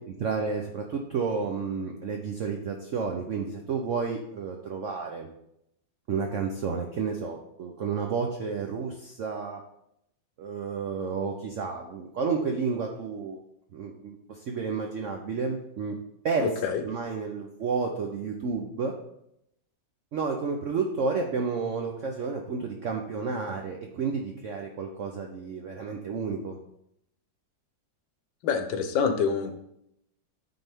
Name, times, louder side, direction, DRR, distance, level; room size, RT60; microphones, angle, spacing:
voice 1, 0.2-5.3 6.1-9.6 10.4-13.4 13.7-16.0 16.2-16.5 16.8-18.9 20.1-26.6, right 5 dB, 75° right, 2 dB, 0.7 m, -31 dB
voice 2, 16.4-16.8 28.4-29.5, left 6 dB, 80° left, 7 dB, 1.5 m, -26 dB
8.9 x 4.0 x 3.4 m, 0.78 s
omnidirectional pair, 2.0 m